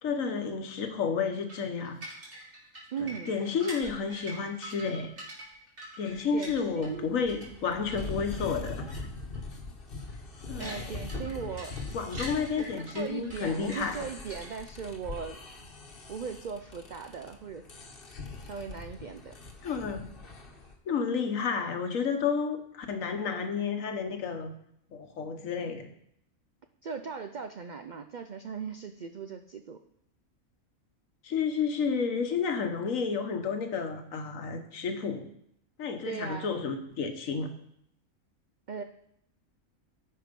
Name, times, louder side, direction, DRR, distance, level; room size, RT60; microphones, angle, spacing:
voice 1, 0.0-2.0 3.0-5.1 6.0-9.1 10.5-10.8 11.9-14.1 19.6-20.0 20.9-24.5 24.9-25.9 31.2-35.3 35.8-37.5, left 5 dB, 70° left, 7 dB, 1.4 m, -31 dB
sound 1, 1.5-7.0 7.3-8.4 8.9-9.1 9.3-9.5 10.0-14.8, right 1 dB, 55° right, 3.5 m, -45 dB
voice 2, 2.9-3.4 6.3-7.2 10.6-11.8 12.6-15.4 16.1-17.6 18.4-19.3 26.8-29.8 36.0-36.5 38.7-38.8, right 6 dB, 80° right, 7 dB, 0.4 m, -38 dB
sound 2, 6.1-20.7, left 3 dB, 45° left, 1.2 m, -42 dB
12.5 x 4.8 x 5.2 m, 0.73 s
omnidirectional pair, 1.4 m